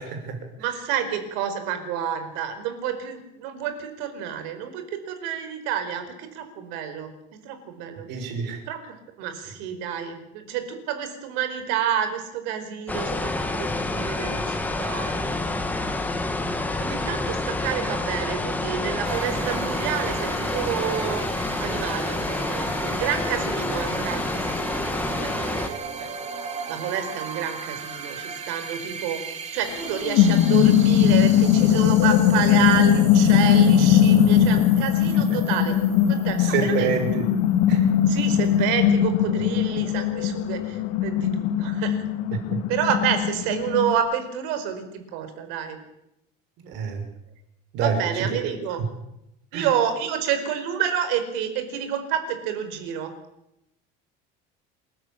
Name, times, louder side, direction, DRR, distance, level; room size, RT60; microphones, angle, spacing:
voice 1, 0.0-0.4 8.1-8.6 16.4-16.5 25.6-25.8 36.4-37.3 37.7-37.9 42.5-42.6 46.6-47.0 47.7-48.4 49.5-49.7, right 6 dB, 60° right, 6 dB, 5.7 m, -27 dB
voice 2, 0.6-8.1 8.7-15.5 16.8-21.3 21.6-24.8 25.2-25.6 26.0-26.1 26.7-35.8 36.1-36.9 38.1-42.0 42.7-45.8 47.8-48.8 49.5-53.1, right 9 dB, 75° right, 9 dB, 4.8 m, -29 dB
sound 1, 12.9-25.7, left 2 dB, 10° left, 1.9 m, -28 dB
sound 2, 19.0-37.5, right 5 dB, 35° right, 2.5 m, -37 dB
sound 3, 29.7-44.0, left 9 dB, 75° left, 1.8 m, -20 dB
27.5 x 14.0 x 8.9 m, 0.84 s
cardioid pair, 160°, 20 cm